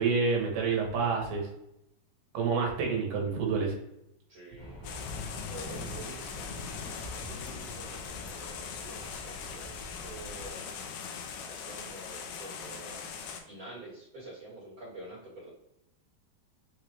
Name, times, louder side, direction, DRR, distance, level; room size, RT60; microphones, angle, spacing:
voice 1, 0.0-1.5 2.3-3.7, right 5 dB, 70° right, -1 dB, 2.6 m, -28 dB
voice 2, 4.3-5.1 5.5-10.8 11.1-13.1 13.4-15.5, right 2 dB, 55° right, -8 dB, 1.7 m, -48 dB
sound 1, 4.6-10.5, left 1 dB, 60° left, 1.1 m, -47 dB
sound 2, 4.8-13.4, left 6 dB, 85° left, 2.2 m, -40 dB
6.9 x 2.4 x 3.2 m, 0.83 s
omnidirectional pair, 5.0 m